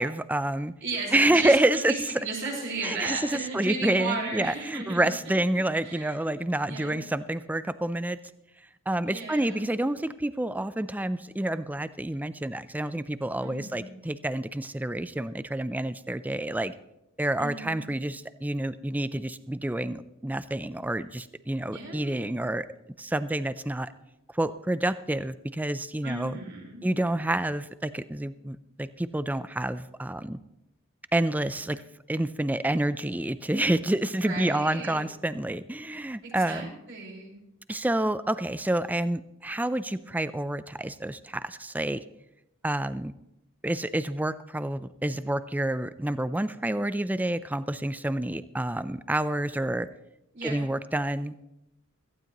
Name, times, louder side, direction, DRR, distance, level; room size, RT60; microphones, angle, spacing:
voice 1, 0.0-0.7 1.1-1.9 2.8-8.2 8.9-16.7 17.2-22.7 23.0-23.9 24.3-26.4 26.8-30.4 31.1-31.8 32.1-36.7 37.7-42.0 42.6-43.1 43.6-49.9 50.4-51.3, right 1 dB, 5° right, 14 dB, 0.4 m, -28 dB
voice 2, 0.8-5.4 5.8-6.4 6.7-7.1 9.1-9.7 13.4-13.9 17.4-17.9 21.7-22.3 26.0-26.8 34.1-35.1 36.2-37.3 50.3-50.6, right 3 dB, 55° right, -2 dB, 4.6 m, -35 dB
17.0 x 15.0 x 3.0 m, 0.88 s
head